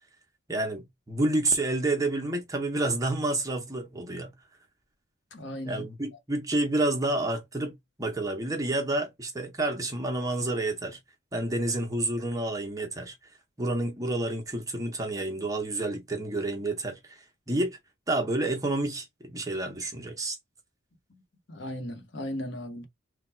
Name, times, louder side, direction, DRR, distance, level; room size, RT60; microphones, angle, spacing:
voice 1, 0.5-4.3 5.6-11.0 11.3-13.2 13.6-17.8 18.1-20.4, right 2 dB, 15° right, 0.7 m, -29 dB
voice 2, 5.3-5.8 21.5-22.8, equal, 65° left, 0.9 m, -36 dB
3.4 x 2.2 x 4.2 m
head